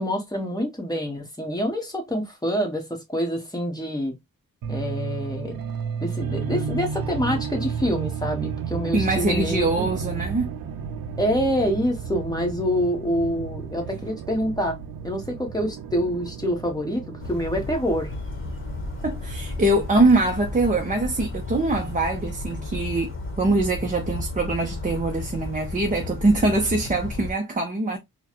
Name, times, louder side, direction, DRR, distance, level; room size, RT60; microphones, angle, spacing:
voice 1, 0.0-4.1 4.7-5.6 6.0-9.8 11.2-14.8 15.0-18.1, equal, 10° left, 1.3 m, -26 dB
sound 1, 4.6-20.9, right 6 dB, 90° right, 0.7 m, -33 dB
voice 2, 8.9-10.5 19.0-28.0, right 2 dB, 25° right, 0.6 m, -23 dB
Bird vocalization bird call bird song, 17.2-27.3, left 2 dB, 35° left, 1.2 m, -33 dB
4.5 x 2.2 x 2.9 m
wide cardioid pair, 110°, 35 cm